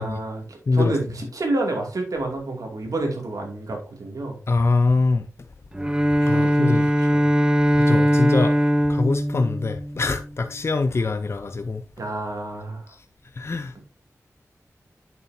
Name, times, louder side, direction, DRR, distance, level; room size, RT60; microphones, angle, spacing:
voice 1, 0.0-4.4 6.3-7.2 12.0-12.9 13.7-13.8, right 2 dB, 75° right, 2.4 m, -29 dB
voice 2, 4.5-5.2 6.2-6.9 7.8-8.5 8.9-11.8 13.4-13.7, left 3 dB, 50° left, 0.6 m, -23 dB
Bowed string instrument, 5.7-10.3, equal, 15° right, 0.6 m, -20 dB
8.3 x 7.2 x 2.7 m
wide cardioid pair, 100°, 6 cm